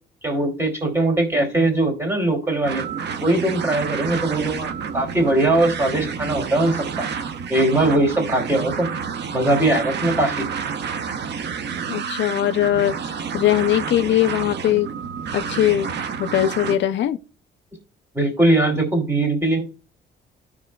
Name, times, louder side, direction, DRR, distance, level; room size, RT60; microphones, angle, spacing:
voice 1, 0.2-2.8 3.2-7.1 7.5-8.9 9.3-10.4 18.1-19.6, right 2 dB, 10° right, 2.6 m, -20 dB
sound 1, 2.6-16.8, right 6 dB, 60° right, 0.8 m, -29 dB
voice 2, 11.9-14.9 15.3-15.9 16.2-17.2, left 12 dB, 65° left, 0.5 m, -20 dB
13.0 x 5.0 x 2.2 m
cardioid pair, 90°, 20 cm